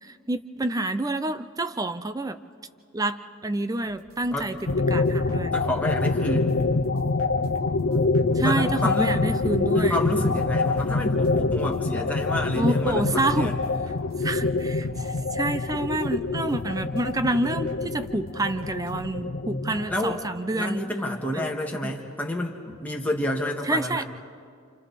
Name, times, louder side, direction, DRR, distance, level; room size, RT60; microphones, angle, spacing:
voice 1, 0.0-2.4 2.9-3.2 3.4-4.5 4.9-5.5 8.3-10.0 12.5-13.5 14.2-20.8 21.3-21.5 21.8-21.9 23.6-24.1, right 2 dB, 15° right, 11 dB, 0.5 m, -28 dB
sound 1, 3.9-19.1, right 1 dB, 85° right, 2.2 m, -52 dB
sound 2, 4.7-20.8, left 3 dB, 60° left, 0.7 m, -25 dB
voice 2, 5.5-6.6 7.9-9.3 9.7-13.7 19.5-20.2 20.5-24.1, left 1 dB, 5° left, -1 dB, 1.9 m, -30 dB
29.0 x 28.0 x 4.2 m, 2.2 s
head